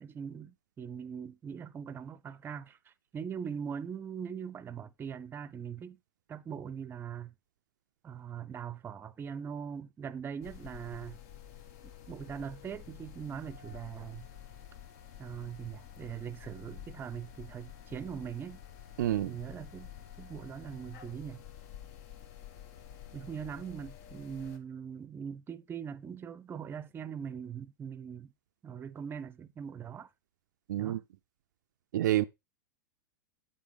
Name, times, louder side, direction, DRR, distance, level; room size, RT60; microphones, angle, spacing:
voice 1, 0.0-6.0 6.3-7.3 8.0-11.2 12.1-14.3 15.2-18.6 19.3-19.9 20.2-21.4 23.1-28.3 28.6-30.1 30.8-31.0, right 7 dB, 20° right, 0.6 m, -41 dB
sound 1, 10.4-24.6, left 10 dB, 55° left, 1.1 m, -50 dB
voice 2, 19.0-19.3 30.7-31.0 31.9-32.2, right 14 dB, 65° right, 0.4 m, -28 dB
8.7 x 8.1 x 3.4 m
hypercardioid pair, 100°, 11 cm